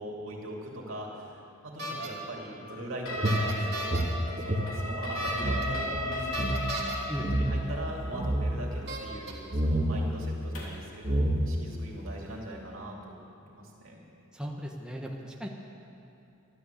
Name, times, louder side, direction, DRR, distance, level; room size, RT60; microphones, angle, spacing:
voice 1, 0.0-4.0 4.4-6.6 7.3-14.0, right 1 dB, 70° right, -2 dB, 2.8 m, -41 dB
sound 1, 1.8-2.1 3.3-4.0 5.1-5.6 6.3-7.0 8.0-8.1 8.9-9.3, right 1 dB, 55° right, 2.7 m, -35 dB
sound 2, 3.1-10.9, left 1 dB, 80° left, 3.1 m, -37 dB
sound 3, 3.2-5.7 5.9-6.0 6.3-6.6 7.2-7.6 8.0-8.5 9.5-9.9 10.7-10.8 11.0-11.7, right 1 dB, 35° right, 1.8 m, -28 dB
voice 2, 7.1-7.4 14.3-15.5, equal, 5° right, -1 dB, 1.1 m, -36 dB
13.0 x 12.5 x 8.1 m, 2.7 s
head